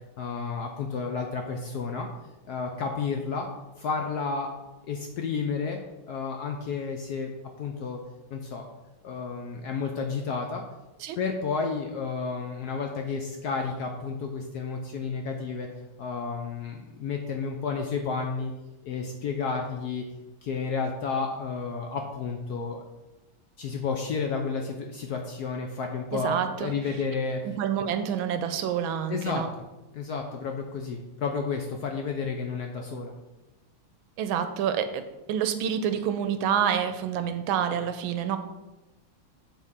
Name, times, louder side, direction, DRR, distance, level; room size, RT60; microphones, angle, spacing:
voice 1, 0.2-2.1 2.4-3.5 3.8-4.5 4.9-5.8 6.1-7.3 7.6-8.0 8.3-8.6 9.0-10.6 11.2-15.7 16.0-18.5 18.8-20.0 20.4-22.8 23.6-27.4 29.1-29.4 29.9-33.1, left 5 dB, 70° left, 3 dB, 0.9 m, -31 dB
voice 2, 26.1-26.8 27.4-29.5 34.2-35.0 35.3-38.4, right 8 dB, 80° right, 9 dB, 1.4 m, -28 dB
7.4 x 3.9 x 5.5 m, 1.0 s
omnidirectional pair, 2.3 m